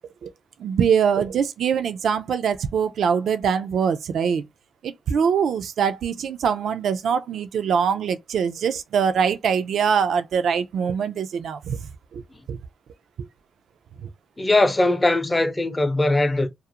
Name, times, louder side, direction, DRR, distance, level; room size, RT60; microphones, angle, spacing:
voice 1, 0.6-4.4 4.8-11.8 12.1-12.2 12.5-12.6 14.0-14.1, right 7 dB, 75° right, 0.3 m, -23 dB
voice 2, 14.4-16.5, left 2 dB, 25° left, 0.6 m, -20 dB
2.4 x 2.0 x 2.8 m
supercardioid pair, 50°, 0 cm